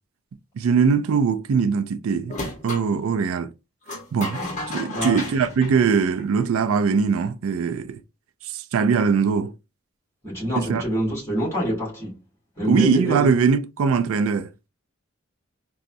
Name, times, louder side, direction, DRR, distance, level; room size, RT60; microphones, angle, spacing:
voice 1, 0.6-2.3 2.6-3.5 4.1-4.4 4.7-8.0 8.4-9.5 10.6-10.8 12.6-14.5, right 5 dB, 80° right, 0.3 m, -21 dB
sound 1, 2.3-2.9 3.9-6.6, left 2 dB, 35° left, 1.0 m, -33 dB
voice 2, 10.2-12.2 12.6-13.3, equal, 10° left, 2.0 m, -26 dB
3.9 x 2.3 x 2.5 m
head